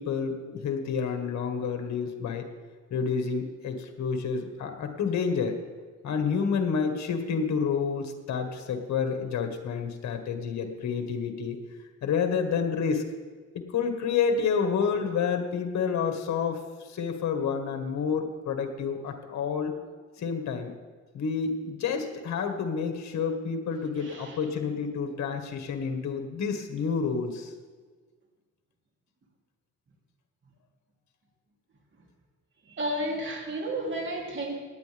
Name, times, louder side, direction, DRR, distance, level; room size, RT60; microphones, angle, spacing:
voice 1, 0.0-2.5 2.9-5.6 6.0-11.6 12.0-13.0 13.5-19.8 20.2-20.7 21.1-27.5, left 6 dB, 65° left, 5 dB, 1.6 m, -29 dB
voice 2, 24.0-24.4 32.6-34.6, right 1 dB, 40° right, 0 dB, 3.0 m, -32 dB
17.5 x 9.7 x 3.5 m, 1.5 s
cardioid pair, 90°, 30 cm